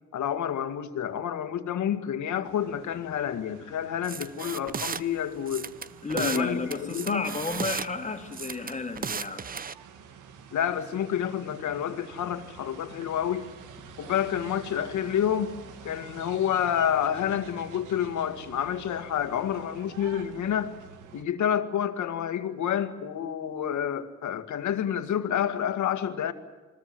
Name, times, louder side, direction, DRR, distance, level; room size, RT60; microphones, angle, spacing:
voice 1, 0.1-5.7 6.1-7.2 10.5-13.5 14.0-15.5 15.8-20.7 21.1-26.3, left 9 dB, 75° left, 2.0 m, -29 dB
sound 1, 2.4-21.2, right 7 dB, 85° right, 1.9 m, -49 dB
sound 2, 4.0-5.0 5.5-6.4 6.7-7.9 8.3-9.7, right 6 dB, 30° right, 0.7 m, -34 dB
voice 2, 6.0-9.4, left 3 dB, 25° left, 2.7 m, -31 dB
28.5 x 21.5 x 7.8 m
cardioid pair, 90°, 30 cm